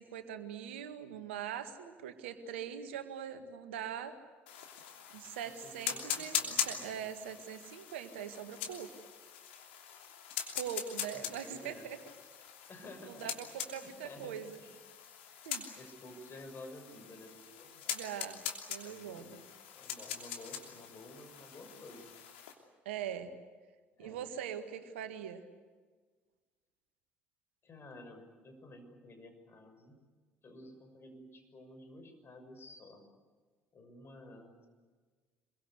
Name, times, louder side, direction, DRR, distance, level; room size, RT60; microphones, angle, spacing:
voice 1, 0.0-4.2 5.1-8.9 10.5-12.0 13.0-14.6 15.4-15.6 17.9-18.4 18.7-19.4 22.9-23.3 24.0-25.4, right 9 dB, 75° right, 9 dB, 1.8 m, -42 dB
sound 1, 4.5-22.5, left 8 dB, 75° left, 3.0 m, -42 dB
voice 2, 5.4-7.0 11.1-11.9 12.7-13.3 13.7-14.8 15.7-18.0 18.8-19.4 19.7-22.1 24.0-24.2 27.6-30.0 30.4-33.1 33.7-34.7, left 1 dB, 40° left, 6 dB, 6.5 m, -52 dB
27.0 x 23.0 x 8.2 m, 1.4 s
figure-of-eight pair, 55°, 6 cm